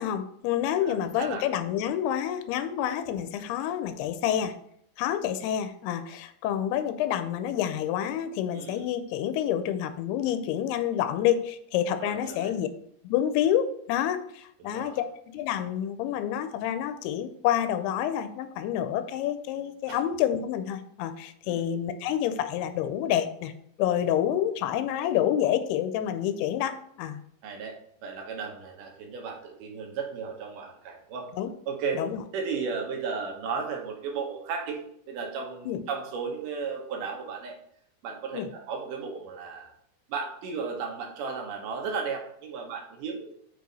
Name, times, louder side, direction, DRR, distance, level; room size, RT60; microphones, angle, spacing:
voice 1, 0.0-4.6 5.0-12.7 13.0-15.0 15.3-23.5 23.8-27.2 31.4-31.5 32.0-32.2 35.7-35.8 38.3-38.5, left 10 dB, 90° left, 10 dB, 2.6 m, -28 dB
voice 2, 0.8-1.4 8.5-8.9 12.0-12.5 14.6-15.0 19.9-20.0 21.5-21.6 27.4-31.3 31.7-32.0 32.3-34.8 35.1-37.6 38.0-39.7 40.1-43.3, right 5 dB, 70° right, 2 dB, 2.3 m, -34 dB
6.6 x 4.7 x 4.0 m, 0.69 s
omnidirectional pair, 4.5 m